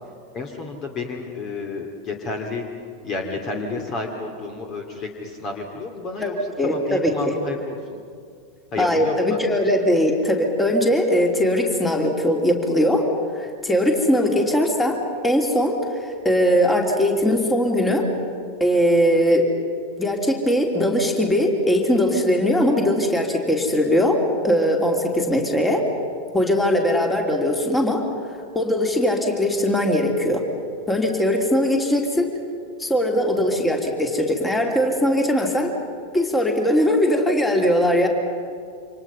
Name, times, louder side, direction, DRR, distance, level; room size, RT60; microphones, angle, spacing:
voice 1, 0.3-2.6 3.0-6.3 6.6-7.8 8.7-9.4 33.4-33.7, left 3 dB, 30° left, 3 dB, 2.6 m, -31 dB
voice 2, 6.6-7.3 8.8-13.1 13.4-15.0 15.2-18.1 18.6-19.5 20.0-25.8 26.3-28.0 28.5-30.4 30.9-32.3 32.8-35.7 36.1-38.1, equal, 10° left, 2 dB, 3.2 m, -20 dB
28.5 x 26.5 x 5.6 m, 2.3 s
figure-of-eight pair, 90°, 0 cm